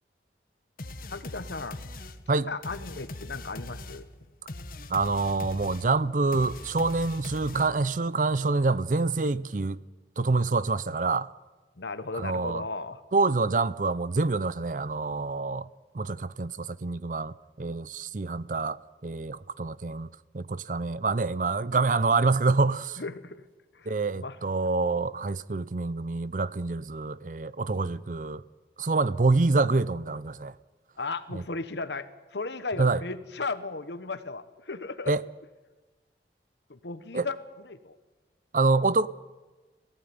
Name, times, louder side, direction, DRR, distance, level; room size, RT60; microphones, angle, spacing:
sound 1, 0.8-8.0, left 2 dB, 50° left, 1.1 m, -41 dB
voice 1, 1.1-1.9 2.3-4.1 11.8-13.0 23.0-23.4 23.7-24.4 31.0-35.1 36.7-37.4 37.6-37.9, left 3 dB, 80° left, 1.2 m, -36 dB
voice 2, 4.9-9.8 10.2-11.3 12.1-12.6 13.1-15.7 15.9-18.8 19.0-20.1 20.3-23.0 23.9-28.4 28.8-30.5 31.3-31.4 32.8-33.0 35.1-35.2 37.1-37.3 38.5-39.1, right 3 dB, 45° right, 0.6 m, -26 dB
18.5 x 15.5 x 9.6 m
head